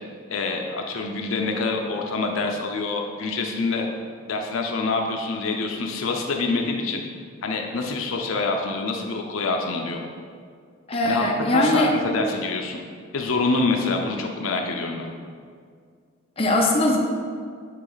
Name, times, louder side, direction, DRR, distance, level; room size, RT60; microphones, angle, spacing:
voice 1, 0.3-3.9 4.3-7.0 7.4-10.0 11.0-11.2 11.5-12.8 13.1-15.1, left 3 dB, 70° left, 3 dB, 0.5 m, -26 dB
voice 2, 10.9-12.0 16.4-17.0, left 1 dB, 30° left, -1 dB, 0.7 m, -20 dB
8.4 x 3.0 x 3.9 m, 2.1 s
head